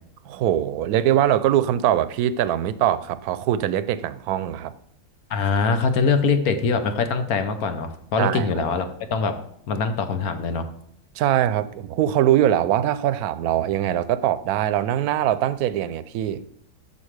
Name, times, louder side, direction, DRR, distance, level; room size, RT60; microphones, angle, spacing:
voice 1, 0.2-4.7 8.2-8.5 11.2-16.4, right 11 dB, 80° right, 14 dB, 1.0 m, -22 dB
voice 2, 5.3-8.8 9.1-9.4 9.7-10.7, left 5 dB, 75° left, 8 dB, 1.3 m, -23 dB
8.3 x 7.3 x 3.2 m, 0.69 s
omnidirectional pair, 1.6 m